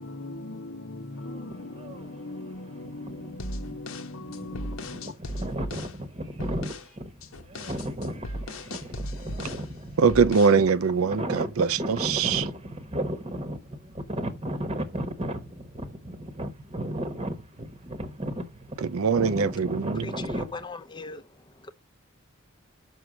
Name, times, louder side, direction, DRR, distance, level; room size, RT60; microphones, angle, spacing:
voice 1, 0.0-5.1, left 2 dB, 60° left, 0.9 m, -39 dB
sound 1, 1.3-2.1 2.7-20.6, right 1 dB, 25° right, 1.1 m, -34 dB
sound 2, 3.4-6.0 6.4-6.9 7.2-9.7 10.1-10.6, equal, 80° left, 1.1 m, -37 dB
voice 2, 10.0-12.5 18.8-20.1, right 5 dB, 80° right, 0.5 m, -22 dB
voice 3, 19.9-21.7, left 3 dB, 20° left, 0.7 m, -40 dB
6.3 x 6.1 x 5.0 m
head